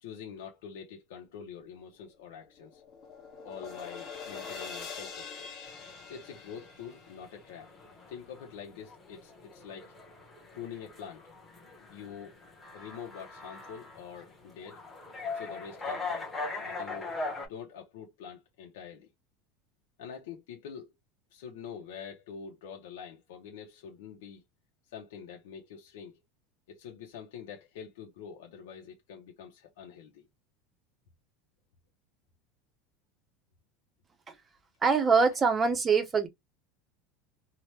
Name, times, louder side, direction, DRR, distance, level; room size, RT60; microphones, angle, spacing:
voice 1, 0.0-2.8 3.4-5.6 6.1-7.7 8.1-9.9 10.5-11.2 11.9-12.4 12.7-14.8 15.3-17.1 17.4-19.1 20.0-20.9 21.3-24.4 24.9-26.2 26.7-30.3, left 7 dB, 90° left, 0.7 m, -45 dB
sound 1, 2.1-8.4, left 5 dB, 35° left, 1.0 m, -44 dB
sound 2, 5.7-17.5, left 3 dB, 10° left, 0.9 m, -41 dB
voice 2, 34.8-36.3, right 5 dB, 20° right, 0.6 m, -24 dB
2.9 x 2.1 x 3.1 m
supercardioid pair, 160°, 0 cm